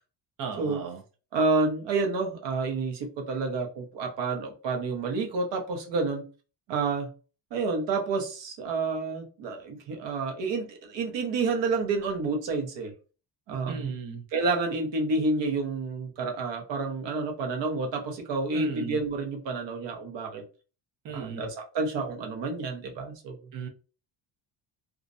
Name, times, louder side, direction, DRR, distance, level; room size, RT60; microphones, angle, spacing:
voice 1, 0.4-1.0 13.7-14.2 18.5-19.0 21.0-21.5 23.5-23.7, right 5 dB, 45° right, 0.5 m, -36 dB
voice 2, 1.3-6.2 6.7-7.1 7.5-12.9 13.5-13.9 14.3-20.4 21.1-23.4, right 3 dB, 65° right, 0.8 m, -29 dB
2.4 x 2.0 x 2.5 m
cardioid pair, 180°, 48 cm